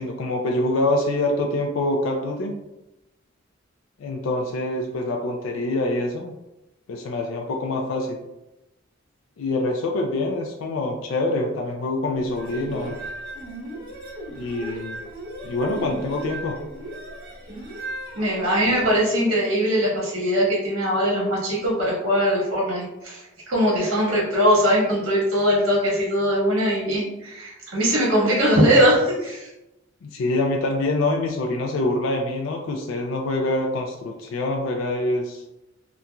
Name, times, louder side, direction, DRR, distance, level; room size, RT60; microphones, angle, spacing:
voice 1, 0.0-2.5 4.0-6.3 6.9-8.2 9.4-13.0 14.4-15.0 15.4-16.6 18.7-18.8 30.0-35.4, left 2 dB, 70° left, 2 dB, 0.3 m, -25 dB
sound 1, 12.2-19.0, right 1 dB, 45° right, 1.4 m, -36 dB
voice 2, 18.1-29.5, equal, 80° right, -5 dB, 1.3 m, -21 dB
2.9 x 2.5 x 2.2 m, 0.93 s
head